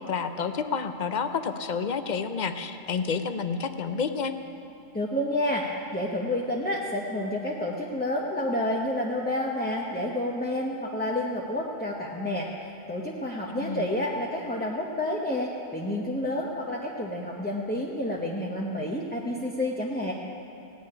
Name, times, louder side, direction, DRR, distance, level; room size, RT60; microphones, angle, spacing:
voice 1, 0.0-4.3 13.5-13.9, left 5 dB, 45° left, 9 dB, 0.7 m, -30 dB
voice 2, 4.9-5.6 5.9-20.1, left 1 dB, 10° left, -3 dB, 0.8 m, -29 dB
17.0 x 7.2 x 9.8 m, 2.8 s
omnidirectional pair, 1.3 m